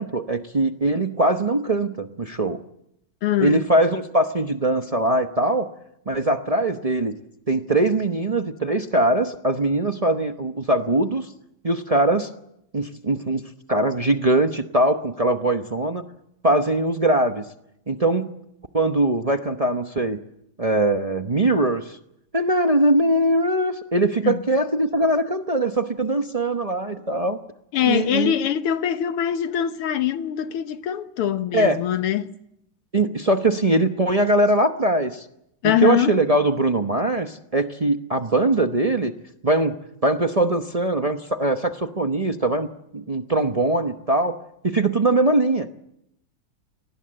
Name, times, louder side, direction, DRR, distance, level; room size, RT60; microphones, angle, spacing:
voice 1, 0.0-2.6 3.4-5.7 6.1-7.1 7.5-11.3 11.6-12.3 12.7-13.4 13.7-16.0 16.4-17.4 17.9-18.3 18.7-20.2 20.6-22.0 22.3-27.4 27.8-28.3 31.5-31.8 32.9-35.2 35.6-39.1 39.4-42.7 42.9-44.4 44.6-45.7, right 2 dB, 60° right, 0.3 m, -21 dB
voice 2, 3.2-3.6 24.2-24.4 27.7-32.3 35.6-36.1, left 10 dB, 90° left, 2.1 m, -23 dB
28.5 x 19.5 x 7.6 m
omnidirectional pair, 2.4 m